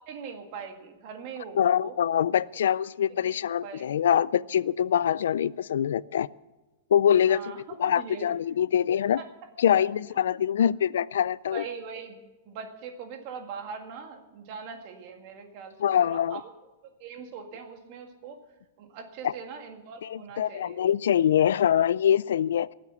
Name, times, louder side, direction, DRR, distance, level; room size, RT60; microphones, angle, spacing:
voice 1, 0.0-1.9 3.1-3.3 3.6-3.9 7.3-8.3 9.2-9.3 11.5-12.2 12.5-16.4 17.0-18.4 18.8-20.8, right 6 dB, 40° right, 1.8 m, -41 dB
voice 2, 1.6-6.3 6.9-9.2 9.6-11.6 15.8-16.4 19.2-19.3 20.0-22.7, left 9 dB, 85° left, 0.4 m, -24 dB
18.0 x 7.6 x 7.0 m
supercardioid pair, 170°, 0 cm